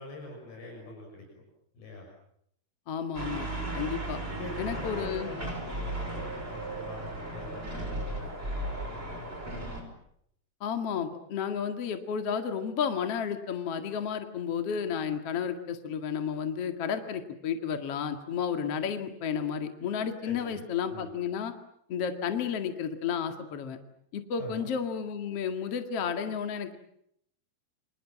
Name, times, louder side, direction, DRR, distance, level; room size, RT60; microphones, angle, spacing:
voice 1, 0.0-1.4 1.7-2.1 4.3-9.7 20.2-20.6 20.9-21.1 24.4-24.7, left 2 dB, 75° left, 1 dB, 8.2 m, -44 dB
voice 2, 2.9-3.5 3.7-4.2 4.6-5.3 10.6-21.5 21.9-23.8 24.1-26.8, left 7 dB, 45° left, 7 dB, 2.6 m, -32 dB
sound 1, 3.1-9.8, right 1 dB, 15° right, 5.9 m, -36 dB
29.0 x 26.5 x 7.4 m, 0.72 s
omnidirectional pair, 4.5 m